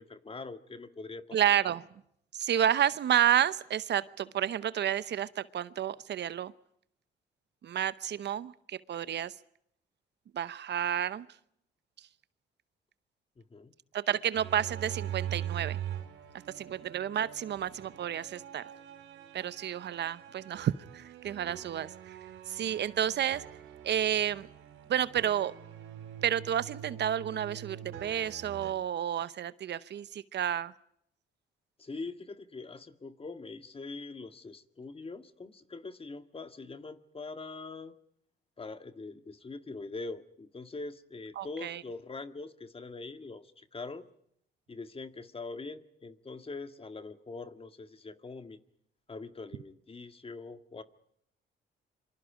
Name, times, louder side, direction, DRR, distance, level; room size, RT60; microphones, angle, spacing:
voice 1, 0.0-1.4 13.4-13.7 16.7-16.8 31.8-37.9 38.6-44.0 44.7-48.6 49.1-50.8, left 3 dB, 30° left, 9 dB, 1.8 m, -43 dB
voice 2, 1.3-1.8 2.3-6.5 7.6-9.3 10.3-11.3 12.0-12.1 13.9-15.8 16.6-18.7 19.3-22.2 22.5-23.5 23.8-24.5 24.9-25.5 26.2-30.7 41.4-41.8, right 10 dB, 60° right, 16 dB, 0.8 m, -30 dB
sound 1, 14.3-28.7, right 10 dB, 90° right, 4.2 m, -43 dB
27.0 x 25.0 x 5.0 m, 0.72 s
cardioid pair, 90°, 20 cm